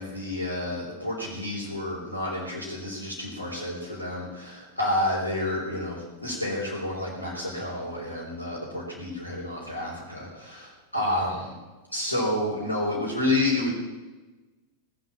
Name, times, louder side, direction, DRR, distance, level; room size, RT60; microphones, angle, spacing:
voice 1, 0.0-11.5 11.9-13.7, left 1 dB, 85° left, -7 dB, 4.0 m, -29 dB
19.0 x 8.0 x 7.3 m, 1.2 s
figure-of-eight pair, 90°, 0 cm